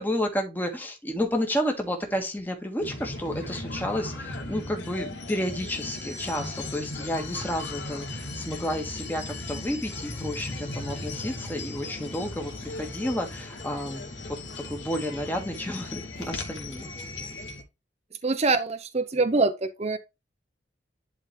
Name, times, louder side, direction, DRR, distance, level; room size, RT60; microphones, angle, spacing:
voice 1, 0.0-14.0 14.7-16.9, equal, 10° left, 1.6 m, -31 dB
sound 1, 2.8-17.6, left 2 dB, 90° left, 2.4 m, -37 dB
voice 2, 18.2-20.0, right 3 dB, 35° right, 0.8 m, -24 dB
11.0 x 4.0 x 3.2 m
head